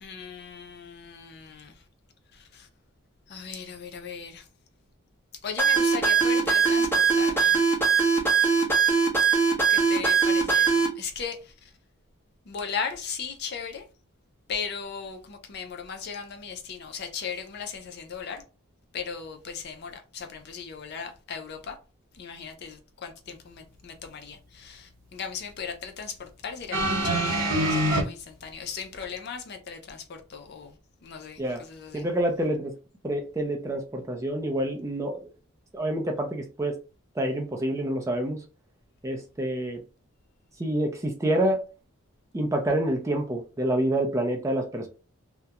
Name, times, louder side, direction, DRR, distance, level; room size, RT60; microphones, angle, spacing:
voice 1, 0.0-1.7 2.5-2.7 3.3-4.4 5.4-7.6 9.7-11.4 12.5-13.8 14.5-18.4 18.9-21.8 22.2-30.7 31.0-31.4 31.7-32.0, left 6 dB, 50° left, 0.4 m, -37 dB
sound 1, 5.6-10.9, right 5 dB, 10° left, 0.8 m, -21 dB
sound 2, 26.7-28.0 29.0-29.1, right 1 dB, 80° right, 0.9 m, -24 dB
voice 2, 31.9-32.7 33.0-35.2 35.7-36.7 37.2-38.4 39.0-39.8 40.6-41.6 42.3-44.9, right 1 dB, 15° right, 0.4 m, -27 dB
2.3 x 2.1 x 2.8 m
head